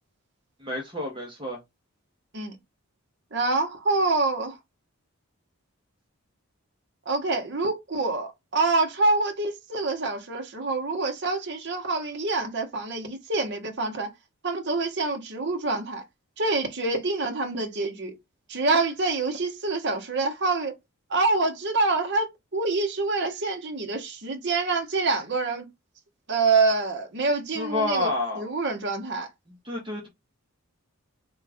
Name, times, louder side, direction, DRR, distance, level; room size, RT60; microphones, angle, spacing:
voice 1, 0.6-1.6 27.5-28.5 29.6-30.1, left 2 dB, 20° right, 0.9 m, -29 dB
voice 2, 3.3-4.6 7.1-14.1 14.4-16.0 16.4-18.2 18.5-20.7 21.1-25.7 26.3-28.1 28.4-29.3, right 3 dB, 50° right, 1.0 m, -26 dB
3.6 x 2.4 x 3.4 m
head